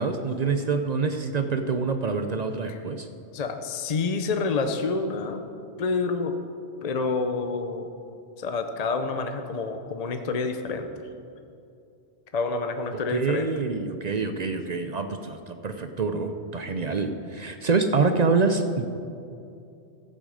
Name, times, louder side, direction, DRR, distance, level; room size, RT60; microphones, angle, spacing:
voice 1, 0.0-3.1 13.1-18.8, right 4 dB, 50° right, 7 dB, 0.5 m, -26 dB
voice 2, 3.3-5.4 5.8-6.4 6.8-7.9 8.4-11.0 12.3-13.5, left 4 dB, 45° left, 7 dB, 0.6 m, -28 dB
14.5 x 7.2 x 5.1 m, 2.5 s
omnidirectional pair, 1.2 m